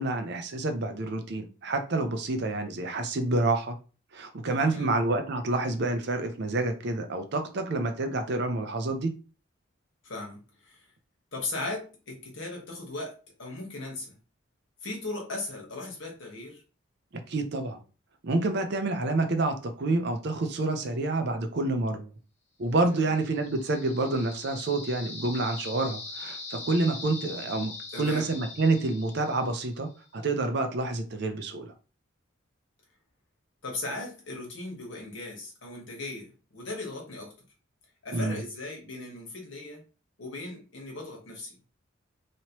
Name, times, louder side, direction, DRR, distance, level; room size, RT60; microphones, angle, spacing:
voice 1, 0.0-3.8 4.1-9.1 17.3-17.8 18.2-22.1 22.6-31.7 38.1-38.4, right 2 dB, 55° right, 0.5 m, -28 dB
voice 2, 4.6-4.9 10.0-10.9 11.3-13.1 13.4-14.1 14.8-16.6 22.9-23.1 27.9-28.3 33.6-37.3 38.0-39.8 40.2-41.5, left 2 dB, 65° left, 1.3 m, -38 dB
sound 1, 22.9-29.9, left 3 dB, 35° left, 0.7 m, -42 dB
3.0 x 2.9 x 2.9 m
head